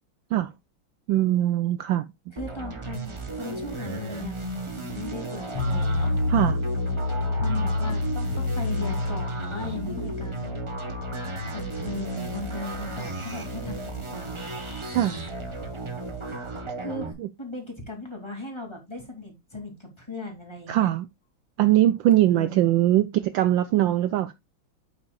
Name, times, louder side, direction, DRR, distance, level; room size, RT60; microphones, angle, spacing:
voice 1, 1.1-2.1 6.3-6.6 14.9-15.2 20.7-21.0 21.6-24.3, right 13 dB, 75° right, 1.2 m, -21 dB
voice 2, 2.3-6.2 7.4-10.6 11.5-14.4 16.8-17.1 17.4-20.9 22.3-22.7, left 2 dB, 10° left, 2.5 m, -37 dB
sound 1, 2.4-17.1, right 3 dB, 25° right, 0.6 m, -35 dB
sound 2, 5.5-16.7, left 2 dB, 90° left, 3.0 m, -30 dB
8.6 x 7.9 x 2.3 m
omnidirectional pair, 2.3 m